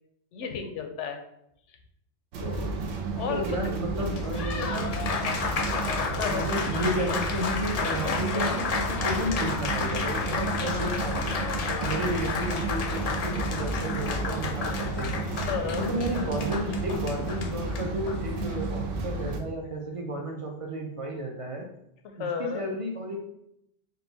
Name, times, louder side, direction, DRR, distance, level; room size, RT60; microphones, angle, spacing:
voice 1, 0.3-1.2 2.4-2.8 3.2-3.7 4.6-4.8 6.2-6.6 15.5-15.8 22.2-22.7, left 6 dB, 85° left, 6 dB, 0.9 m, -33 dB
sound 1, 2.3-19.4, right 3 dB, 80° right, 1.0 m, -32 dB
voice 2, 3.3-4.9 6.2-11.4 11.8-15.3 15.7-21.6 22.2-23.2, equal, 45° right, 0 dB, 0.4 m, -33 dB
Applause, 4.0-18.7, left 5 dB, 70° left, 0.3 m, -32 dB
4.0 x 2.2 x 3.9 m, 0.77 s
omnidirectional pair, 1.2 m